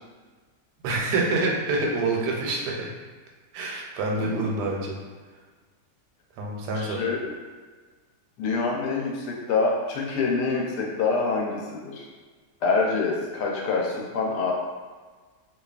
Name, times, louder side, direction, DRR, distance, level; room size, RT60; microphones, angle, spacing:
voice 1, 0.8-2.9 3.5-5.0 6.4-7.0, right 2 dB, 85° right, -2 dB, 1.1 m, -26 dB
voice 2, 4.2-4.7 6.7-7.3 8.4-12.1 12.6-14.5, left 4 dB, 85° left, -2 dB, 1.2 m, -26 dB
2.7 x 2.3 x 2.3 m, 1.4 s
omnidirectional pair, 1.7 m